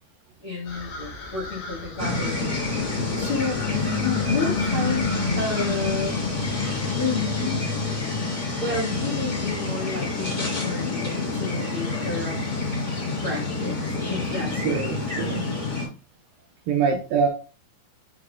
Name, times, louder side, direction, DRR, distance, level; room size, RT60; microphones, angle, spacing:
voice 1, 0.4-6.2 6.9-7.6 8.6-12.4 13.2-15.0 15.3-15.4, left 3 dB, 45° left, -6 dB, 1.9 m, -31 dB
sound 1, 0.6-6.8, left 1 dB, 65° left, 3.0 m, -39 dB
sound 2, 2.0-15.9, left 3 dB, 25° left, 3.1 m, -27 dB
voice 2, 14.6-15.5 16.7-17.3, right 6 dB, 75° right, 1 dB, 2.2 m, -24 dB
8.8 x 4.6 x 2.4 m, 0.33 s
omnidirectional pair, 4.8 m